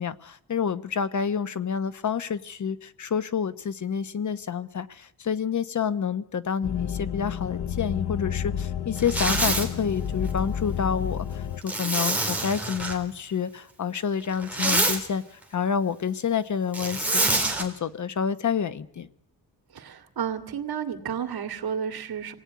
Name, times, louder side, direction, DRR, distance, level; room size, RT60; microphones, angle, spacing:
voice 1, 0.0-17.2 17.6-19.1, left 7 dB, 50° left, 13 dB, 1.0 m, -28 dB
sound 1, 6.6-11.6, left 8 dB, 85° left, 0.9 m, -30 dB
Zipper (clothing), 9.0-9.7 11.7-13.0 14.3-15.0 16.7-17.6, right 2 dB, 5° right, 3.7 m, -25 dB
voice 2, 19.7-22.3, right 8 dB, 75° right, 7 dB, 2.5 m, -31 dB
26.5 x 18.0 x 9.5 m, 0.76 s
wide cardioid pair, 165°, 38 cm